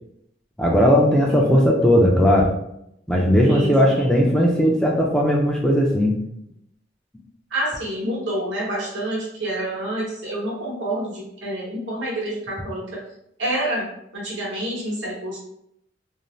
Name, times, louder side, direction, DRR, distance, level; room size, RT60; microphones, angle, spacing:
voice 1, 0.6-2.5 3.1-6.2, equal, 5° left, -2 dB, 0.3 m, -17 dB
voice 2, 3.4-4.3 7.5-12.9 13.4-13.9 14.1-15.4, right 1 dB, 85° right, -4 dB, 1.0 m, -28 dB
2.6 x 2.0 x 3.0 m, 0.76 s
head